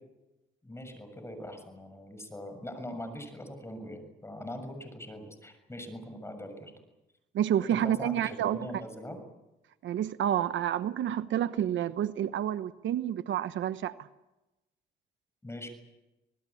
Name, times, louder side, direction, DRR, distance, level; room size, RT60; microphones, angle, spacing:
voice 1, 0.6-6.7 7.7-9.2 15.4-15.7, left 1 dB, 15° left, 7 dB, 6.7 m, -42 dB
voice 2, 7.3-8.7 9.8-13.9, right 10 dB, 70° right, 13 dB, 1.0 m, -29 dB
26.0 x 19.5 x 8.6 m, 0.99 s
cardioid pair, 90°, 20 cm